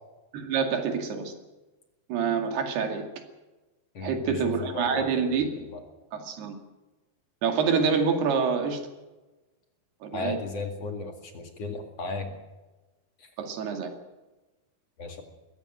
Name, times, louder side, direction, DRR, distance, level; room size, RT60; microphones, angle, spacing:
voice 1, 0.3-1.3 2.1-3.0 4.0-5.6 6.1-6.6 7.4-8.8 10.0-10.4 13.4-13.9, right 6 dB, 85° right, 5 dB, 4.3 m, -27 dB
voice 2, 3.9-5.4 5.7-5.8 10.1-12.4 13.2-13.3 15.0-15.2, left 3 dB, 45° left, 4 dB, 2.8 m, -35 dB
21.5 x 16.0 x 9.2 m, 1.1 s
omnidirectional pair, 4.5 m